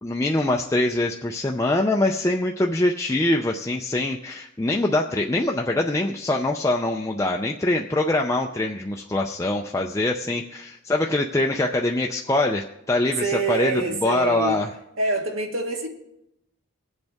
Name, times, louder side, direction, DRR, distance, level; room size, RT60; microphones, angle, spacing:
voice 1, 0.0-14.7, left 2 dB, 15° left, 0.4 m, -24 dB
voice 2, 13.2-14.6 15.0-15.9, right 3 dB, 70° right, 1.6 m, -26 dB
21.5 x 7.9 x 3.5 m
head